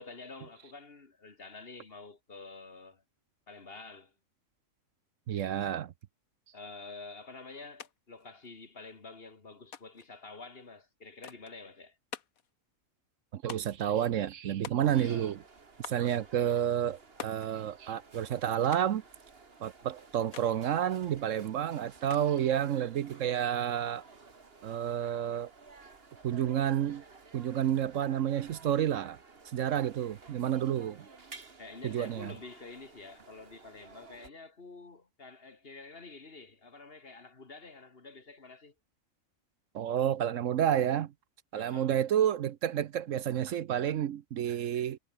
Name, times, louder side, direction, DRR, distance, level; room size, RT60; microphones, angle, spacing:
voice 1, 0.0-3.0 3.5-4.1 6.5-12.0 14.9-15.3 31.6-38.7 41.5-41.9, left 3 dB, 45° left, 2.2 m, -48 dB
voice 2, 5.3-5.9 13.3-15.4 15.8-19.0 19.6-24.0 24.6-25.5 26.2-27.0 27.3-29.2 29.5-31.1 31.8-32.3 39.7-41.1 41.5-45.0, right 10 dB, 70° right, 1.1 m, -30 dB
sound 1, 7.8-7.9 8.2-8.9 9.7-10.1 11.2-11.6 12.1-12.5 13.5-13.9 14.6-15.2 15.8-16.1 17.2-17.5 18.7-19.0 20.3-20.6 22.1-22.5, left 8 dB, 85° left, 1.7 m, -45 dB
sound 2, 14.8-34.3, right 4 dB, 45° right, 2.2 m, -55 dB
omnidirectional pair, 1.4 m